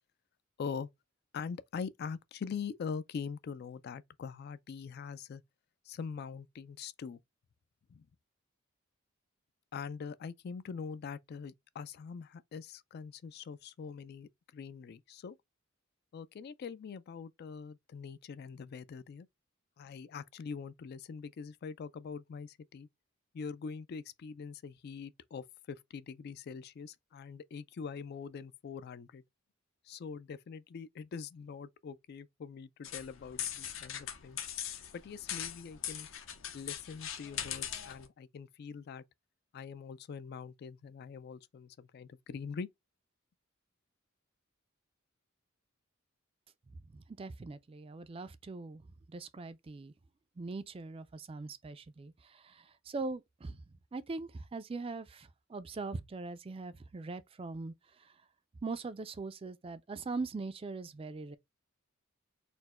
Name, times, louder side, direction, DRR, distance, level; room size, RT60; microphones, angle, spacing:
voice 1, 0.6-0.9 1.3-5.4 5.9-7.2 7.9-8.1 9.7-15.4 16.1-19.3 19.8-22.9 23.3-29.2 29.9-34.4 34.9-36.1 36.5-39.0 39.5-42.7, left 6 dB, 50° left, 0.3 m, -43 dB
sound 1, 32.8-38.1, left 10 dB, 65° left, 0.7 m, -40 dB
voice 2, 46.9-48.8 49.1-49.9 50.4-53.6 53.9-58.1 58.6-61.4, right 3 dB, 25° right, 0.3 m, -41 dB
4.3 x 2.1 x 4.1 m
head